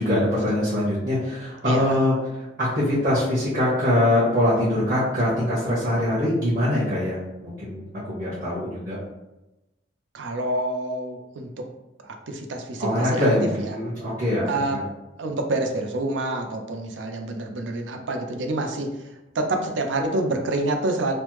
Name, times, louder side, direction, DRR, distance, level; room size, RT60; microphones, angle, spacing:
voice 1, 0.0-9.0 12.8-14.8, left 1 dB, 50° right, -9 dB, 1.1 m, -23 dB
voice 2, 1.7-2.0 10.1-11.7 12.0-13.2 13.6-13.7 14.5-14.8 15.2-18.9 19.3-21.1, right 2 dB, 75° right, 4 dB, 0.5 m, -27 dB
3.2 x 2.0 x 3.0 m, 0.96 s
head